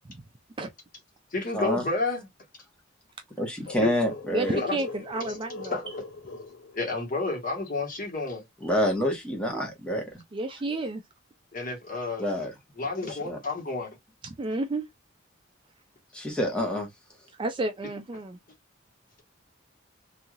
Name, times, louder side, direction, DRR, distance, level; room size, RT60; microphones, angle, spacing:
voice 1, 1.3-2.3 3.8-3.9 4.5-4.8 5.7-5.9 6.7-8.5 11.5-12.2 12.8-14.0, left 3 dB, 45° left, 1.4 m, -30 dB
voice 2, 3.4-4.5 8.6-10.0 12.2-12.5 13.2-13.4 16.1-16.9, equal, 5° left, 1.1 m, -27 dB
sound 1, 3.6-7.4, left 3 dB, 75° left, 1.5 m, -41 dB
voice 3, 4.3-5.8 10.3-11.0 14.2-14.8 17.4-18.4, right 2 dB, 25° right, 0.4 m, -31 dB
3.1 x 2.6 x 2.4 m
head